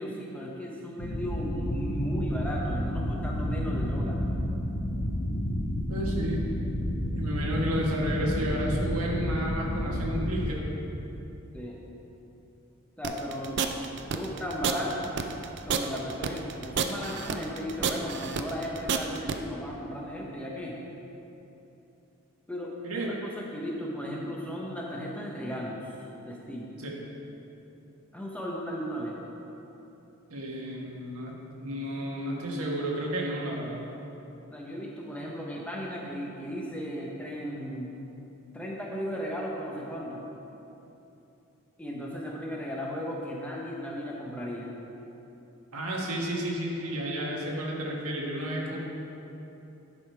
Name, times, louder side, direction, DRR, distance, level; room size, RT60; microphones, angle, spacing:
voice 1, 0.0-4.2 11.5-11.8 13.0-13.8 14.1-15.1 15.6-20.8 22.5-25.8 26.2-26.7 28.1-29.2 34.5-38.0 38.5-40.2 41.8-44.7, equal, 5° left, -3 dB, 0.8 m, -35 dB
sound 1, 1.0-10.5, equal, 50° left, 0.8 m, -30 dB
voice 2, 5.9-6.4 7.1-10.7 22.8-23.1 26.8-27.0 30.3-33.8 45.7-48.8, right 1 dB, 90° right, -3 dB, 1.5 m, -32 dB
sound 2, 13.0-19.4, right 6 dB, 50° right, 0.4 m, -30 dB
11.0 x 5.0 x 4.7 m, 3.0 s
head